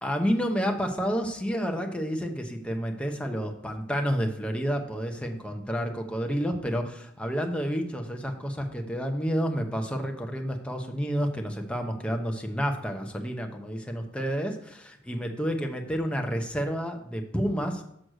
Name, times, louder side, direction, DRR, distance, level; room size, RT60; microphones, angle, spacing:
voice 1, 0.0-17.8, equal, 5° left, 3 dB, 0.8 m, -30 dB
6.4 x 5.1 x 6.4 m, 0.75 s
head